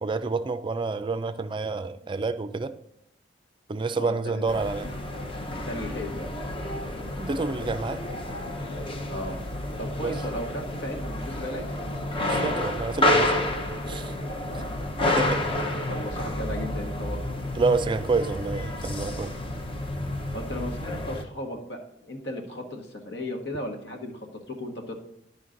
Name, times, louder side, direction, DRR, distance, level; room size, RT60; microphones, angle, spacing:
voice 1, 0.0-2.7 3.7-4.9 7.2-8.0 10.0-10.1 12.3-13.5 13.9-14.1 15.2-15.4 17.5-19.3, right 3 dB, 25° right, 0.4 m, -28 dB
voice 2, 3.9-4.4 5.5-6.3 9.1-9.4 9.8-11.7 14.4-14.7 15.7-17.2 20.3-25.0, left 1 dB, 70° left, 1.5 m, -36 dB
sound 1, 4.5-21.2, left 1 dB, 30° left, 0.8 m, -30 dB
11.0 x 5.1 x 3.8 m
head